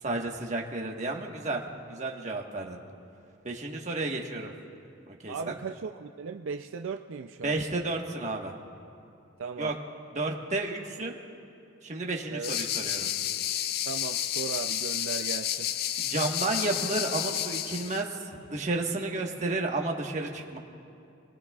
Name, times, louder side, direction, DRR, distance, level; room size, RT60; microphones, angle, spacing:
voice 1, 0.0-1.6 1.9-2.8 3.4-4.5 5.2-5.5 7.4-8.5 9.6-9.7 10.1-11.2 11.8-13.1 16.0-20.6, right 2 dB, 35° right, 0 dB, 1.4 m, -32 dB
voice 2, 5.3-7.6 9.4-9.7 12.3-12.6 13.9-15.7, right 5 dB, 70° right, 5 dB, 0.4 m, -37 dB
sound 1, 12.4-18.0, left 11 dB, 45° left, 0.3 m, -31 dB
29.5 x 19.0 x 2.4 m, 2.6 s
head